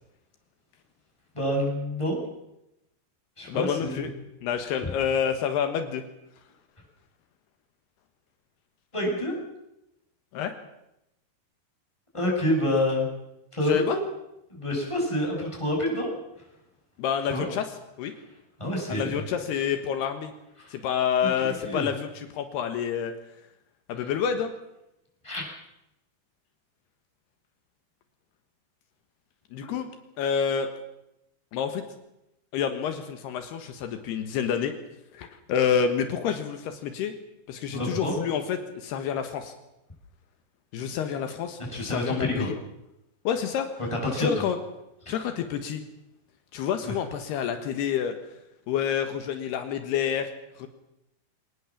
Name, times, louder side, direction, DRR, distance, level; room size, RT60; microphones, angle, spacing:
voice 1, 1.3-2.2 3.4-4.1 4.8-4.9 8.9-9.4 12.1-13.1 13.5-14.0 14.5-16.1 17.3-17.5 18.6-19.2 20.6-20.8 21.2-21.9 24.0-24.1 25.2-25.5 29.6-29.7 37.7-38.1 41.7-42.5 43.9-44.5 45.1-45.2 46.8-46.9, left 1 dB, 5° left, -1 dB, 7.1 m, -28 dB
voice 2, 3.5-4.1 4.4-6.0 10.3-10.5 13.7-14.0 17.0-17.7 18.0-18.1 18.9-20.3 20.7-23.1 23.9-24.5 29.5-29.9 30.2-30.7 31.5-31.8 32.5-34.7 35.1-37.1 37.5-39.5 40.7-42.6 43.3-43.7 44.2-44.6 45.1-45.8 46.5-48.2 48.7-50.3 50.6-50.7, left 8 dB, 80° left, 7 dB, 3.4 m, -28 dB
24.5 x 19.0 x 7.4 m, 0.87 s
omnidirectional pair, 4.7 m